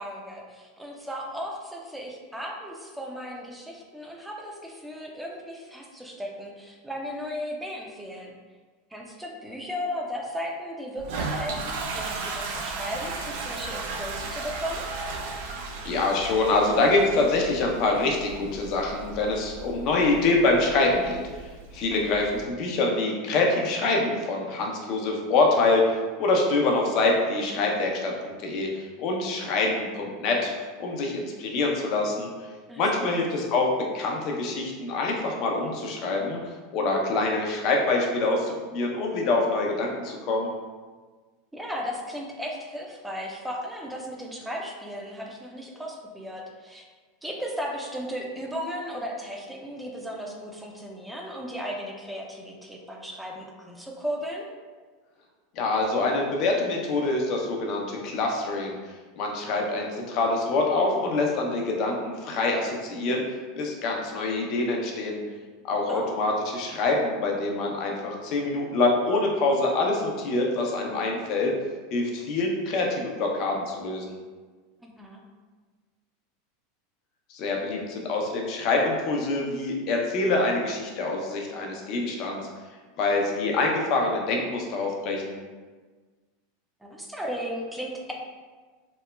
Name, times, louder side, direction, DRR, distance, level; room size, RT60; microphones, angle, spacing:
voice 1, 0.0-8.3 8.9-14.8 21.9-22.2 32.7-33.2 41.5-46.9 47.2-54.5 65.9-66.2 74.8-75.2 86.8-88.1, equal, 5° right, -1 dB, 0.5 m, -36 dB
Toilet flush, 11.0-22.4, right 3 dB, 70° right, 0.3 m, -36 dB
voice 2, 15.8-30.5 30.8-32.3 32.8-36.4 36.7-40.5 55.5-58.8 59.2-63.2 63.6-65.2 65.7-71.5 71.9-74.2 77.3-82.4 83.0-85.4, left 2 dB, 50° left, 0 dB, 0.5 m, -25 dB
2.9 x 2.1 x 2.2 m, 1.4 s
hypercardioid pair, 95°, 0 cm